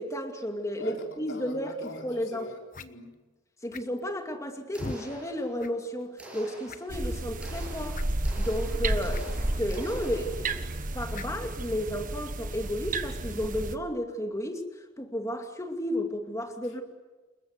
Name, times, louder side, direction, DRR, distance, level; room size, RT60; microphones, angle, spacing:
voice 1, 0.0-1.7 2.0-2.5 3.6-8.0 8.4-9.3 9.6-14.7 15.0-16.8, equal, 15° left, 4 dB, 2.5 m, -33 dB
voice 2, 0.8-3.1, left 1 dB, 70° left, 2 dB, 4.9 m, -42 dB
sound 1, 1.9-2.0 2.7-2.9 3.7-4.1 4.8-5.0 5.6-5.7 6.0-6.1 6.6-7.0 7.9-8.1 9.1-9.2 9.5-9.6 11.1-11.4, left 3 dB, 45° left, 1.2 m, -41 dB
sound 2, 4.7-5.8 6.2-10.7, right 1 dB, 5° right, 8.0 m, -47 dB
sound 3, 6.9-13.8, right 2 dB, 45° right, 1.5 m, -32 dB
29.5 x 21.0 x 9.6 m, 1.2 s
head